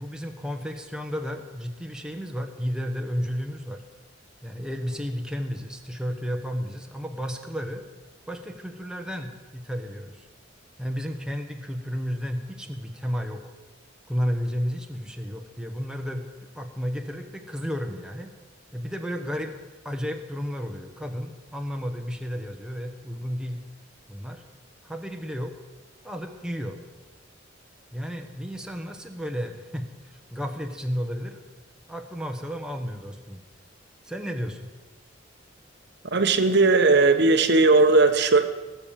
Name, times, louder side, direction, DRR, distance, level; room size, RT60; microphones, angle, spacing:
voice 1, 0.0-3.8 4.4-7.8 8.3-10.3 10.8-13.5 14.1-16.3 16.5-18.3 18.7-19.5 19.8-23.6 24.1-24.4 24.8-25.5 26.0-26.8 27.9-29.9 30.3-31.4 31.9-33.4 34.0-34.7, equal, 5° right, 3 dB, 1.1 m, -32 dB
voice 2, 36.1-38.5, right 3 dB, 60° right, 8 dB, 1.0 m, -18 dB
18.5 x 7.0 x 7.3 m, 1.2 s
head